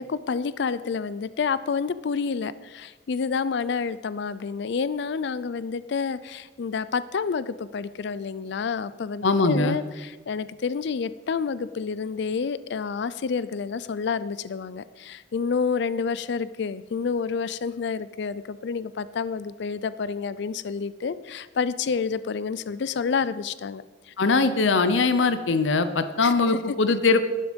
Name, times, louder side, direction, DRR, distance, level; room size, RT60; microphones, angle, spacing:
voice 1, 0.0-23.8 26.2-26.3, left 5 dB, 65° left, 16 dB, 0.4 m, -29 dB
voice 2, 9.2-9.8 24.2-27.2, left 3 dB, 90° left, 11 dB, 0.8 m, -21 dB
12.0 x 10.0 x 5.2 m, 1.3 s
head